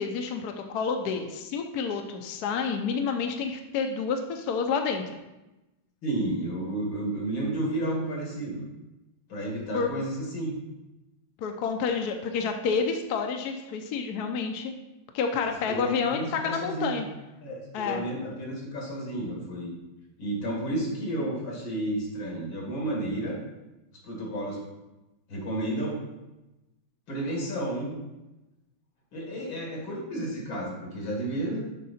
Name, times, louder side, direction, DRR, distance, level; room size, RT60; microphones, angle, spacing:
voice 1, 0.0-5.0 9.7-9.9 11.4-14.7 15.1-17.1 17.7-18.0, left 5 dB, 65° left, 4 dB, 1.1 m, -29 dB
voice 2, 6.0-8.6 9.3-10.6 15.7-17.0 17.4-19.7 20.2-23.4 24.0-24.6 25.3-26.0 27.1-28.0 29.1-31.6, right 1 dB, 85° left, -2 dB, 2.9 m, -31 dB
7.5 x 5.3 x 4.2 m, 1.0 s
omnidirectional pair, 2.1 m